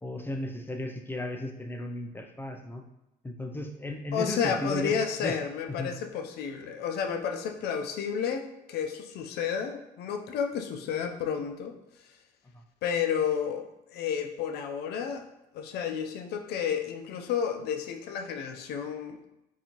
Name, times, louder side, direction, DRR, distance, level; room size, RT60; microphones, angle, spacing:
voice 1, 0.0-2.8 3.2-5.4 5.8-5.9, left 1 dB, 10° left, 3 dB, 0.4 m, -35 dB
voice 2, 4.1-11.8 12.8-15.2 15.5-19.3, left 7 dB, 75° left, 5 dB, 0.5 m, -31 dB
4.0 x 2.7 x 2.9 m, 0.89 s
cardioid pair, 110°, 17 cm